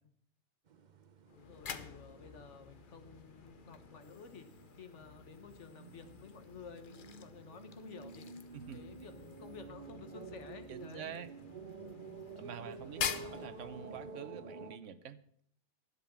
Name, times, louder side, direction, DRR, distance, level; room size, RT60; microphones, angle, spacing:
sound 1, 0.7-14.8, right 4 dB, 45° right, 0.8 m, -51 dB
sound 2, 1.3-14.3, left 7 dB, 50° left, 0.8 m, -47 dB
voice 1, 1.4-8.3 8.7-11.3 11.8-12.1 12.8-13.4, left 5 dB, 70° left, 9 dB, 1.5 m, -53 dB
voice 2, 10.7-11.3 12.3-15.4, right 8 dB, 75° right, 13 dB, 1.1 m, -47 dB
11.0 x 7.8 x 7.2 m, 0.65 s
omnidirectional pair, 1.3 m